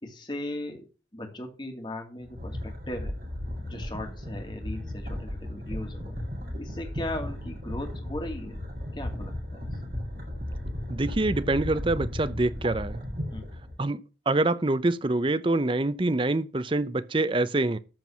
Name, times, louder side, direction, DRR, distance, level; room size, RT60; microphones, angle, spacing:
voice 1, 0.0-0.8 1.1-3.1 3.6-6.2 6.6-8.6 8.9-9.7 13.3-13.5, left 1 dB, 25° left, 2.5 m, -37 dB
sound 1, 2.2-13.8, left 1 dB, 55° right, 3.8 m, -35 dB
voice 2, 10.9-13.0 13.8-14.0 14.3-17.8, right 2 dB, 30° right, 0.6 m, -25 dB
13.5 x 4.7 x 7.2 m
head